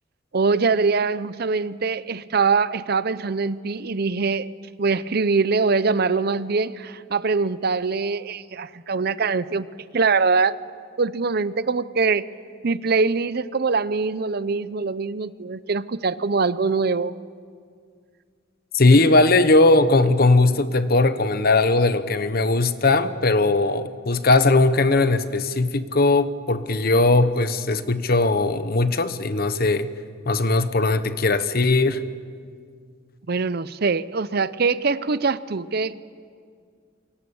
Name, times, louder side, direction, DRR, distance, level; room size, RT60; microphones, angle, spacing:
voice 1, 0.3-4.5 4.8-9.7 9.9-10.5 11.0-12.2 12.6-17.1 33.3-35.9, right 4 dB, 55° right, 16 dB, 0.6 m, -23 dB
voice 2, 18.7-29.9 30.2-32.0, left 2 dB, 50° left, 11 dB, 1.1 m, -19 dB
28.0 x 23.5 x 7.1 m, 2.1 s
head